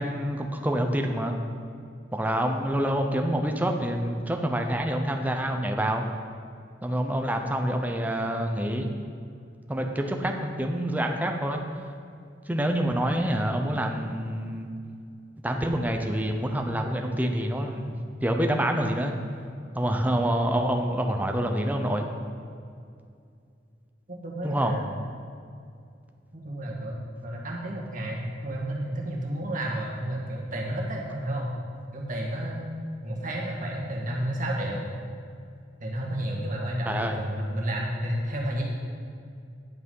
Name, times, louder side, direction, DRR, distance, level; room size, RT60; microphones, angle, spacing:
voice 1, 0.0-1.3 2.1-6.0 6.8-8.9 9.7-11.6 12.5-14.7 15.4-19.2 19.7-22.1 24.4-24.7 36.9-37.2, right 1 dB, 10° right, 3 dB, 0.7 m, -27 dB
voice 2, 24.1-24.9 26.3-31.5 31.9-32.7 33.0-34.9 35.8-38.6, right 1 dB, 45° right, -2 dB, 1.7 m, -31 dB
10.5 x 6.1 x 5.5 m, 2.4 s
head